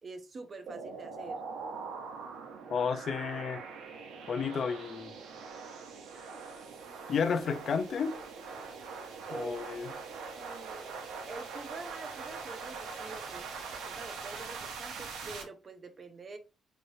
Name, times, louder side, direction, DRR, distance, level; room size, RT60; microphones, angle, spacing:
voice 1, 0.0-1.4 9.3-9.6 10.3-11.0 11.3-16.4, right 3 dB, 30° right, 0.6 m, -46 dB
sound 1, 0.7-15.4, right 5 dB, 80° right, 0.9 m, -42 dB
voice 2, 2.7-3.6 4.3-5.2 7.1-8.1 9.3-9.9, left 6 dB, 40° left, 0.4 m, -32 dB
4.3 x 3.1 x 2.7 m
cardioid pair, 165°, 0 cm